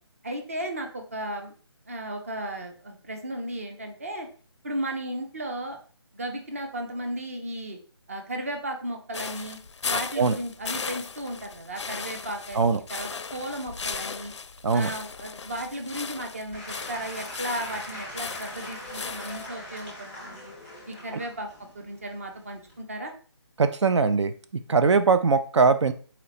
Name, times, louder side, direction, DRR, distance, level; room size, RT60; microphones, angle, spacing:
voice 1, 0.2-1.5 1.9-4.3 4.6-5.8 6.1-7.8 8.1-9.6 9.8-14.3 14.7-20.5 20.9-21.5 21.7-23.1, right 1 dB, 30° right, 4 dB, 0.6 m, -35 dB
sound 1, 9.1-19.5, left 5 dB, 80° left, 0.4 m, -37 dB
Applause / Crowd, 16.5-22.8, left 1 dB, 10° right, 1.0 m, -41 dB
voice 2, 23.6-24.3 24.7-25.9, right 4 dB, 80° right, 10 dB, 0.4 m, -21 dB
4.1 x 2.9 x 4.0 m, 0.41 s
hypercardioid pair, 175°, 15 cm